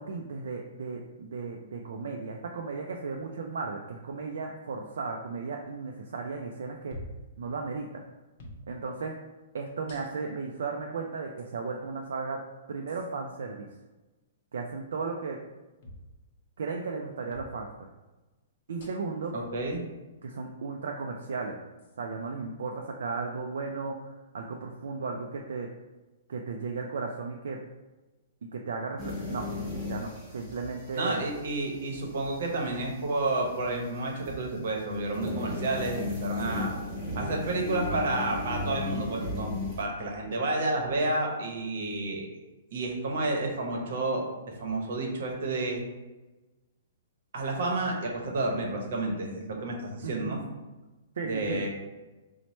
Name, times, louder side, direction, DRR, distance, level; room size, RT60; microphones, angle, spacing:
voice 1, 0.0-7.0 7.4-8.0 8.7-9.2 9.5-12.4 12.7-13.7 14.5-15.4 16.6-17.9 18.7-19.3 20.2-21.6 22.0-25.7 26.3-27.6 28.4-29.5 29.8-31.2 50.0-50.4 51.2-51.6, right 4 dB, 75° right, 1 dB, 0.3 m, -35 dB
sound 1, 6.9-7.3 8.4-8.6 9.9-10.4 11.4-11.5 12.9-13.1 15.8-16.1 17.3-17.5 18.8-19.2 20.3-20.4 21.8-22.0, left 1 dB, 40° left, 0.7 m, -46 dB
voice 2, 19.3-19.8 31.0-36.7 37.1-39.5 39.8-42.3 42.7-44.2 44.6-45.9 47.3-50.4 51.2-51.7, right 2 dB, 60° right, 1 dB, 0.8 m, -30 dB
sound 2, 29.0-34.7 35.1-39.8, left 2 dB, ahead, 0.9 m, -36 dB
3.1 x 2.1 x 4.1 m, 1.1 s
hypercardioid pair, 170°, 0 cm